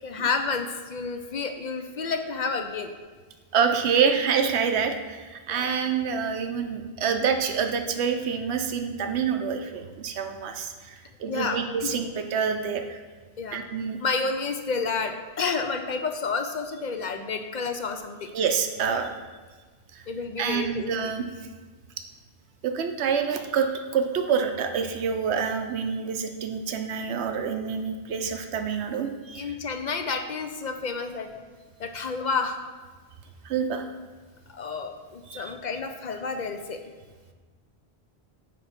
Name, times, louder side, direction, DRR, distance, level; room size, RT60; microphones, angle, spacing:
voice 1, 0.0-2.9 5.5-5.7 11.3-11.9 13.4-13.6 14.0-18.3 20.1-20.9 29.4-31.3 31.8-32.6 34.5-36.8, left 4 dB, 55° left, 6 dB, 0.6 m, -30 dB
voice 2, 3.5-13.0 13.5-14.0 18.3-19.2 19.9-20.0 20.4-21.3 22.6-29.5 33.4-33.8 35.3-35.4, right 6 dB, 90° right, 6 dB, 1.0 m, -27 dB
9.2 x 3.3 x 5.8 m, 1.4 s
omnidirectional pair, 1.1 m